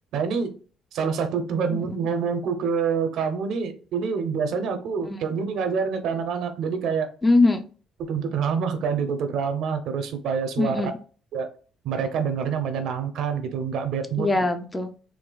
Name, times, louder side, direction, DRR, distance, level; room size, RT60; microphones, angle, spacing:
voice 1, 0.1-0.5 0.9-7.1 8.0-10.9 11.3-11.5 11.8-14.3, right 6 dB, 70° right, 8 dB, 0.6 m, -26 dB
voice 2, 1.7-2.0 5.0-5.3 7.2-7.6 10.6-11.0 14.2-14.9, left 2 dB, 15° left, 7 dB, 0.4 m, -22 dB
4.0 x 2.4 x 2.3 m, 0.38 s
cardioid pair, 120°, 0 cm